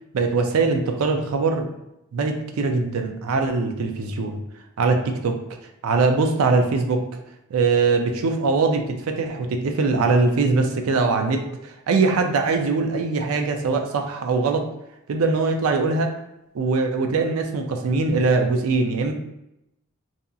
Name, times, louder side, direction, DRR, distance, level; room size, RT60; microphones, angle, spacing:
voice 1, 0.1-1.7 2.1-4.4 4.8-5.4 5.8-7.0 7.5-14.6 15.1-16.1 16.5-19.1, right 4 dB, 75° right, 5 dB, 0.4 m, -22 dB
2.7 x 2.5 x 2.3 m, 0.86 s
head